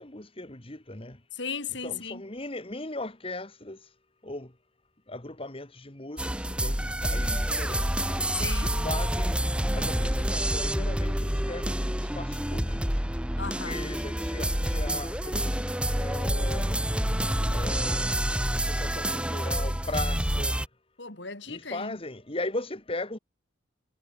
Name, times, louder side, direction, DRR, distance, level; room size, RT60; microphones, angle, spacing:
voice 1, 0.0-1.2 1.8-3.9 4.2-4.5 5.1-8.1 8.6-9.4 9.7-13.0 13.4-15.6 15.9-16.9 17.5-18.2 18.5-20.6 21.5-23.2, left 2 dB, 30° left, 2.2 m, -38 dB
voice 2, 1.3-2.2 8.4-8.8 13.4-13.8 21.0-22.0, left 5 dB, 60° left, 4.3 m, -36 dB
sound 1, 6.2-20.7, right 1 dB, 5° right, 1.8 m, -28 dB
head